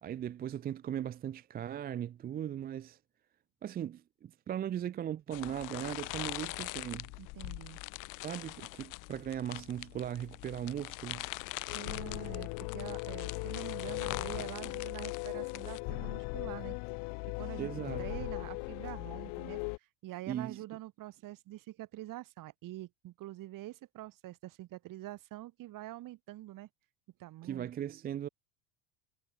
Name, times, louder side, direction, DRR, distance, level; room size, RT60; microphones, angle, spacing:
voice 1, 0.0-3.0 3.6-7.1 8.2-11.3 17.6-18.1 20.3-20.6 27.4-28.3, right 10 dB, 20° right, 0.5 m, -38 dB
sound 1, 5.3-15.8, left 23 dB, 45° left, 0.6 m, -43 dB
voice 2, 7.2-7.8 11.7-16.8 17.4-17.7 18.0-26.7 27.2-27.7, right 16 dB, 50° right, 3.9 m, -45 dB
sound 2, 11.7-19.8, left 35 dB, 65° left, 1.6 m, -39 dB
supercardioid pair, 125°, 43 cm